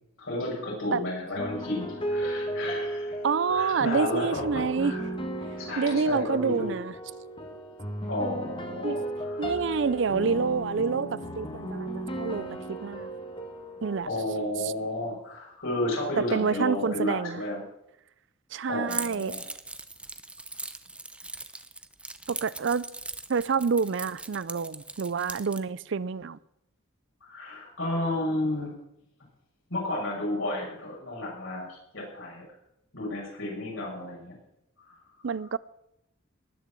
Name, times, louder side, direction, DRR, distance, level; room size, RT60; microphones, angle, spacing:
voice 1, 0.2-3.1 3.5-5.0 5.6-6.7 8.1-9.5 14.1-17.6 18.6-19.4 27.2-28.7 29.7-32.4 32.9-34.4 34.8-34.9, left 1 dB, 80° left, 6.8 m, -32 dB
sound 1, 1.3-14.0, right 1 dB, 25° left, 1.7 m, -35 dB
voice 2, 3.2-4.9 5.8-6.9 8.8-9.0 9.4-13.1 13.8-14.1 14.6-14.7 16.2-17.4 18.5-19.4 22.3-22.9 23.3-26.4 35.2-35.6, right 5 dB, 60° right, 0.5 m, -28 dB
Keys jangling, 18.9-25.6, right 2 dB, 5° right, 0.6 m, -39 dB
19.5 x 6.9 x 7.6 m
head